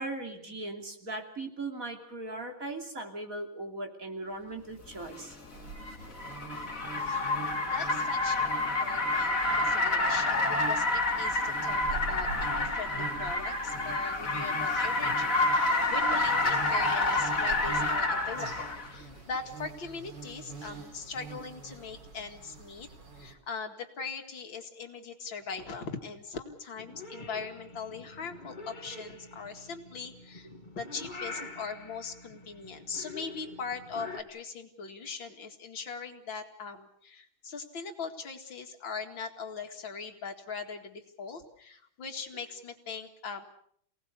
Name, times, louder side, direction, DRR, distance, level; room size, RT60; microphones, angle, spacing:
voice 1, 0.0-5.3, right 2 dB, 40° right, 3 dB, 3.4 m, -38 dB
Car, 5.0-18.9, left 2 dB, 40° left, 3.1 m, -28 dB
sound 1, 5.5-23.3, right 4 dB, 60° right, 3.7 m, -44 dB
voice 2, 7.7-22.9 23.1-30.5 30.7-43.4, left 5 dB, 70° left, 4 dB, 2.8 m, -40 dB
Purr / Meow, 26.8-34.2, left 2 dB, 25° left, 2.5 m, -45 dB
28.5 x 18.5 x 6.8 m, 0.66 s
omnidirectional pair, 2.2 m